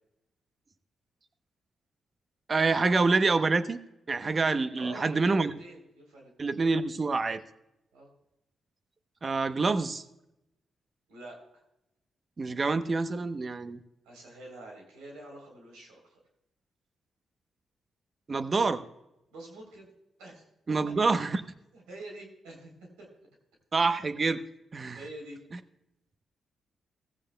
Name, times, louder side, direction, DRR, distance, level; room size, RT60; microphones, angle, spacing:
voice 1, 2.5-3.8 4.1-5.5 6.4-7.4 9.2-10.0 12.4-13.8 18.3-18.8 20.7-21.4 23.7-24.4 24.7-25.0, right 3 dB, 45° right, 11 dB, 0.8 m, -26 dB
voice 2, 4.7-6.6 7.9-8.1 11.1-11.6 14.0-16.2 19.3-19.9 20.2-20.5 21.7-23.1 24.9-25.4, right 2 dB, 85° right, 0 dB, 3.5 m, -46 dB
16.5 x 15.0 x 2.2 m, 0.88 s
hypercardioid pair, 45°, 0 cm